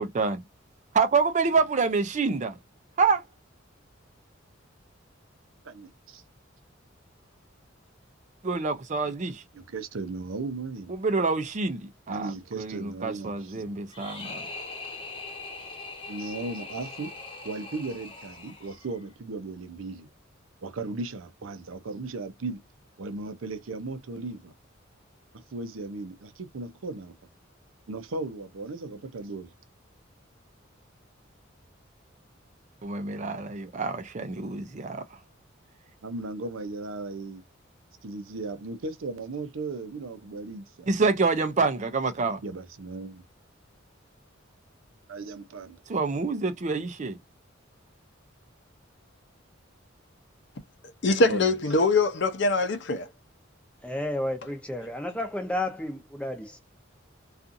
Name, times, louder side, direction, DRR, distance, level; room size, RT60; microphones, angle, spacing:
voice 1, 0.0-0.4 0.9-2.6 3.0-3.2 8.4-9.4 10.9-14.4 32.8-35.0 40.9-42.4 45.9-47.2, right 4 dB, 35° right, 0.5 m, -27 dB
voice 2, 5.6-6.2 9.5-10.9 12.1-13.7 16.1-17.1 17.4-20.1 20.6-22.6 23.0-24.5 25.5-27.1 27.9-29.5 36.0-37.4 38.0-40.9 42.4-43.2 45.1-45.8 51.3-51.5, right 3 dB, 85° right, 0.6 m, -36 dB
sound 1, 13.9-19.0, left 3 dB, 25° left, 1.0 m, -41 dB
voice 3, 51.0-53.1, left 2 dB, 60° left, 0.7 m, -23 dB
voice 4, 53.8-56.6, left 1 dB, 5° left, 0.6 m, -32 dB
2.6 x 2.4 x 2.5 m
head